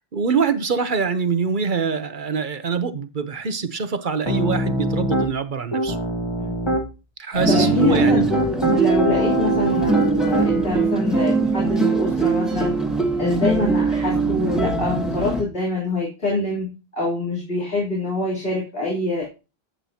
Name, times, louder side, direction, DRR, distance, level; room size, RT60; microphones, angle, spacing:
voice 1, 0.1-6.0 7.2-8.3, right 5 dB, 50° right, 1.0 m, -24 dB
Piano, 4.3-5.3 5.7-6.8 7.5-10.7, right 1 dB, 25° left, 1.7 m, -24 dB
voice 2, 6.4-6.7 7.2-8.3 8.7-12.7 13.2-19.3, left 2 dB, 65° left, 3.7 m, -25 dB
sound 1, 7.3-15.4, right 3 dB, ahead, 1.6 m, -21 dB
11.0 x 7.9 x 2.8 m
omnidirectional pair, 1.1 m